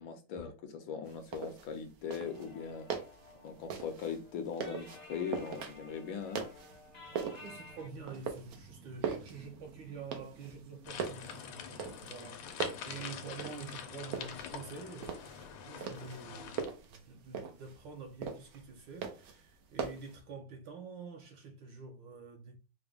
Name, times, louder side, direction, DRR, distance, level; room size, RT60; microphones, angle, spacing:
voice 1, 0.0-2.9 3.4-6.4, left 6 dB, 70° left, 1.3 m, -40 dB
sound 1, 1.0-20.2, right 6 dB, 85° right, 0.7 m, -42 dB
sound 2, 2.0-7.9, left 2 dB, 50° left, 0.6 m, -54 dB
voice 2, 7.1-15.2 15.7-22.6, right 5 dB, 70° right, 1.2 m, -47 dB
sound 3, 10.8-16.6, left 7 dB, 85° left, 1.6 m, -45 dB
5.0 x 2.1 x 3.4 m
omnidirectional pair, 2.4 m